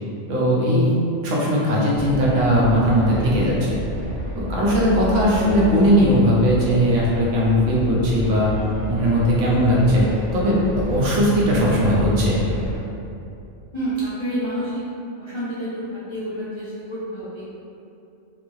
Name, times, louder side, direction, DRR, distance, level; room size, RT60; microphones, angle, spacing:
voice 1, 0.3-0.9 1.2-3.8 4.3-8.5 8.9-10.1 10.3-12.4, equal, 85° right, -5 dB, 1.0 m, -18 dB
sound 1, 1.9-12.8, equal, 60° right, 1.7 m, -31 dB
voice 2, 13.7-14.7 15.2-17.5, right 1 dB, 45° left, -12 dB, 0.3 m, -28 dB
2.9 x 2.6 x 2.6 m, 2.6 s
omnidirectional pair, 1.2 m